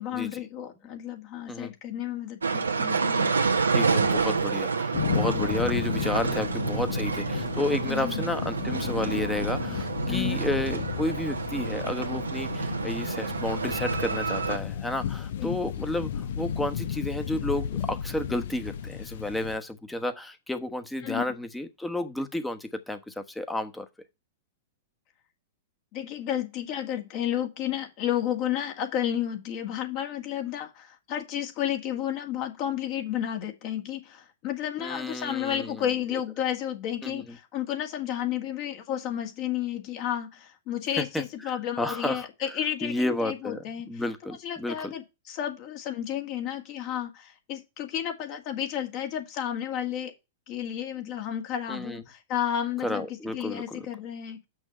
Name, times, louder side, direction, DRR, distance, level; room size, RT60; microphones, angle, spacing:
voice 1, 0.0-3.3 7.9-8.3 10.1-10.4 15.4-15.6 21.0-21.2 25.9-44.0 44.4-50.1 50.5-53.1 53.3-54.4, left 10 dB, 45° left, 2.0 m, -32 dB
sound 1, 2.4-14.6, right 4 dB, 85° right, 1.1 m, -28 dB
voice 2, 3.7-16.1 16.4-23.9 34.8-35.8 37.0-37.2 41.0-41.2 41.8-44.9 51.7-52.0 52.8-53.9, left 1 dB, 5° left, 1.2 m, -32 dB
sound 2, 4.9-19.6, left 9 dB, 65° left, 0.8 m, -33 dB
6.2 x 5.9 x 6.7 m
hypercardioid pair, 105°, 0 cm